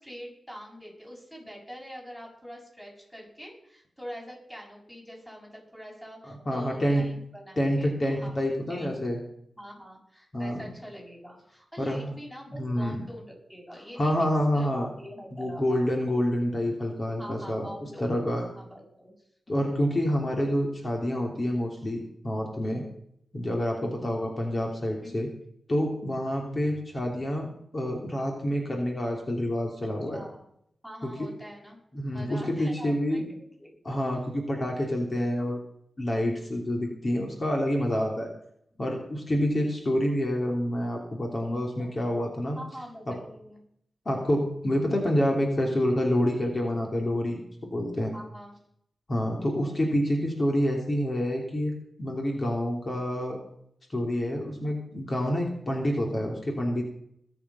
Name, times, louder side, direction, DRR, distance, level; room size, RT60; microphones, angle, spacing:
voice 1, 0.0-8.9 9.6-14.3 14.5-15.9 17.2-18.2 18.6-19.1 19.6-19.9 25.0-25.5 29.8-30.5 30.8-31.8 32.1-33.7 38.8-38.9 41.8-41.9 42.6-43.6 48.1-48.6, equal, 10° left, -2 dB, 7.1 m, -44 dB
voice 2, 6.3-7.1 7.6-9.2 10.3-10.7 11.8-12.1 12.5-13.0 14.0-14.9 15.3-17.7 18.0-18.4 19.5-22.8 23.3-25.3 25.7-27.5 27.7-30.2 31.0-31.1 31.9-33.2 33.8-35.6 36.0-38.3 38.8-42.6 43.1-43.2 44.0-47.4 47.7-48.1 49.1-53.4 53.9-56.8, equal, 40° left, 1 dB, 3.1 m, -27 dB
21.0 x 7.3 x 5.7 m, 0.71 s
cardioid pair, 65°, 0 cm